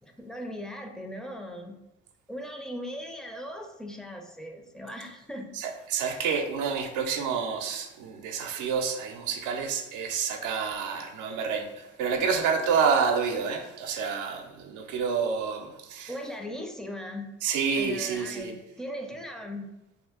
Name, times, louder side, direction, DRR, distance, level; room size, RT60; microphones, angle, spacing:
voice 1, 0.0-1.8 2.3-5.5 16.1-17.3 17.8-19.7, equal, ahead, 0.4 m, -38 dB
voice 2, 5.5-16.1 17.4-18.6, right 6 dB, 90° right, 0.5 m, -28 dB
2.6 x 2.5 x 3.5 m
cardioid pair, 90°, 30 cm